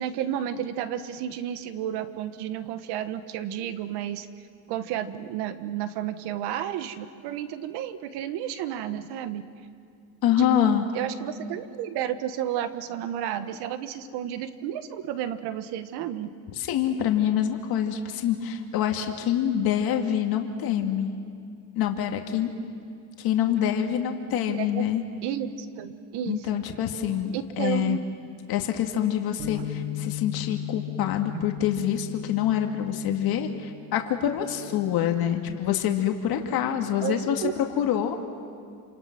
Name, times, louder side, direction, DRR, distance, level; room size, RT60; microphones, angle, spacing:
voice 1, 0.0-4.3 4.7-9.4 10.4-16.3 24.4-24.9 25.2-26.6 27.3-28.0 31.3-31.4 37.0-37.5, right 10 dB, 75° right, 11 dB, 1.6 m, -32 dB
voice 2, 10.2-10.9 16.6-21.1 21.8-22.5 23.2-25.0 26.3-28.0 28.5-37.4 37.8-38.2, left 10 dB, 60° left, 4 dB, 2.2 m, -26 dB
Bass guitar, 29.4-35.6, left 13 dB, 30° right, 2.1 m, -38 dB
28.5 x 27.5 x 6.1 m, 2.3 s
cardioid pair, 110°, 40 cm